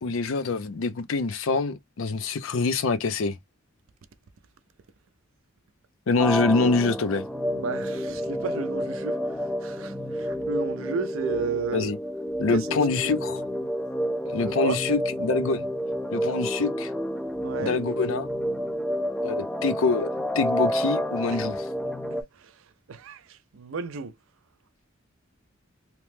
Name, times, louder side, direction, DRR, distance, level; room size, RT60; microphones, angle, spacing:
voice 1, 0.0-3.4 6.1-7.2 11.7-12.0 12.4-13.4 14.3-15.7 16.1-16.9 17.6-18.3 19.2-20.1 20.3-21.7, left 4 dB, 70° left, 0.5 m, -25 dB
sound 1, 6.2-22.2, equal, 5° left, 0.3 m, -29 dB
voice 2, 7.5-11.9 12.5-12.8 13.0-13.2 14.4-14.8 17.4-17.8 21.3-21.4 22.1-24.1, right 5 dB, 70° right, 0.4 m, -33 dB
2.9 x 2.1 x 3.1 m
head